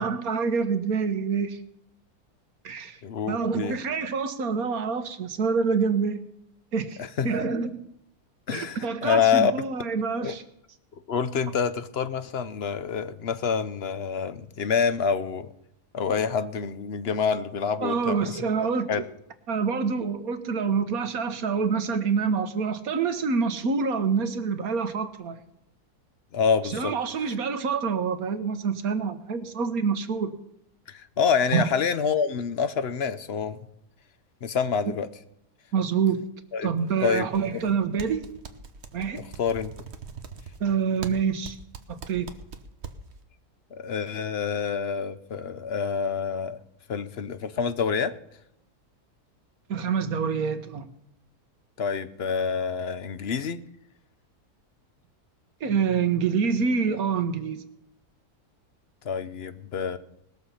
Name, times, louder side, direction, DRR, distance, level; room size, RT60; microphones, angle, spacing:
voice 1, 0.0-1.6 2.6-3.0 3.3-6.2 6.7-7.8 8.5-10.4 17.8-18.9 19.5-25.4 26.6-30.3 31.5-31.7 35.7-36.2 36.6-38.3 38.9-39.2 40.6-41.6 41.9-42.3 49.7-50.9 55.6-57.7, right 5 dB, 70° right, 9 dB, 1.5 m, -26 dB
voice 2, 3.0-3.7 7.0-7.3 8.5-9.5 10.2-10.3 11.1-15.5 15.9-18.4 18.9-19.0 26.3-26.9 30.9-33.6 34.4-35.1 36.5-36.7 37.0-37.6 39.2-39.7 43.7-46.6 46.9-48.1 51.8-53.6 59.0-60.0, left 6 dB, 50° left, 12 dB, 0.9 m, -27 dB
sound 1, 36.9-37.7 38.0-43.2, right 5 dB, 50° right, 1.2 m, -41 dB
20.5 x 7.0 x 5.7 m, 0.80 s
omnidirectional pair, 1.7 m